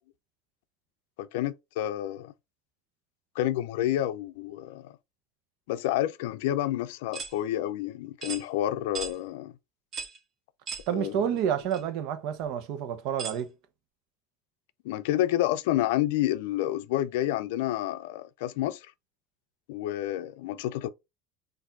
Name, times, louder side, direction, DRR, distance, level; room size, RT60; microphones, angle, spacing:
voice 1, 1.2-2.3 3.4-5.0 5.7-9.5 10.9-11.3 14.8-18.9 19.7-20.9, left 13 dB, 85° left, 0.4 m, -29 dB
sound 1, 7.1-7.3 8.2-8.4 8.9-9.1 9.9-10.2 10.7-10.9 11.7-11.8 13.2-13.4, right 5 dB, 35° right, 1.5 m, -36 dB
voice 2, 10.9-13.5, right 9 dB, 60° right, 0.9 m, -29 dB
4.4 x 2.6 x 4.0 m
supercardioid pair, 140°, 0 cm